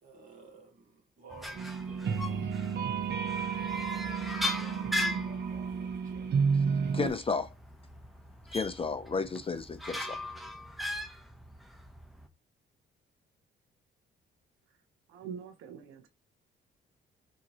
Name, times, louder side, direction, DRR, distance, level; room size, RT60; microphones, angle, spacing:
voice 1, 0.0-2.7 3.8-6.3, right 3 dB, 40° right, 2.0 m, -53 dB
sound 1, 1.3-12.3, left 1 dB, ahead, 0.7 m, -39 dB
sound 2, 1.6-7.1, right 6 dB, 60° right, 0.8 m, -31 dB
voice 2, 6.9-7.5 8.5-10.2, left 4 dB, 30° left, 0.5 m, -32 dB
voice 3, 15.1-16.1, right 7 dB, 90° right, 0.7 m, -44 dB
5.8 x 2.8 x 3.0 m
cardioid pair, 90°, 20 cm